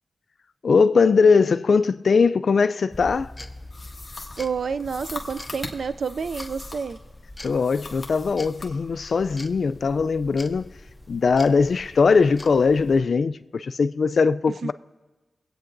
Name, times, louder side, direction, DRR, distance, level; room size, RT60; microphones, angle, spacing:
voice 1, 0.6-3.3 7.4-10.7 11.1-14.7, left 5 dB, 65° left, 0.3 m, -20 dB
sound 1, 2.9-13.0, left 1 dB, 20° left, 0.6 m, -43 dB
sound 2, 3.7-7.0 7.4-8.7, left 2 dB, 40° left, 1.4 m, -40 dB
voice 2, 4.4-7.0 14.6-14.7, right 5 dB, 70° right, 0.3 m, -29 dB
23.5 x 8.6 x 2.6 m
wide cardioid pair, 80°, 0 cm